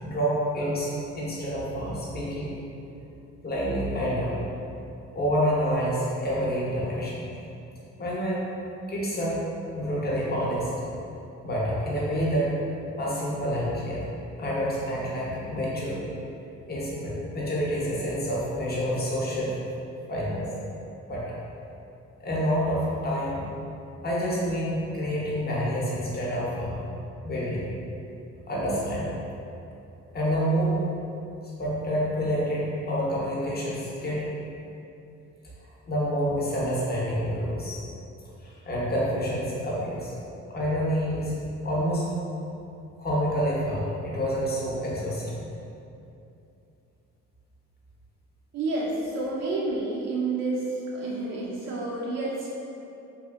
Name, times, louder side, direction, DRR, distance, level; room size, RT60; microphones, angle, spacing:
voice 1, 0.0-2.5 3.4-4.3 5.1-7.3 8.0-8.4 8.9-9.4 9.7-10.7 11.4-12.6 13.0-14.0 14.4-16.0 16.7-19.6 20.1-20.5 21.0-21.3 22.2-23.4 24.0-26.8 27.2-27.8 28.5-29.1 30.1-30.8 31.6-34.3 35.9-37.8 38.4-40.1 40.5-41.4 41.6-42.1 43.0-45.4, equal, 30° left, -6 dB, 0.7 m, -28 dB
voice 2, 48.5-52.5, right 2 dB, 60° right, -4 dB, 0.4 m, -29 dB
2.7 x 2.4 x 2.4 m, 2.7 s
cardioid pair, 90°, 30 cm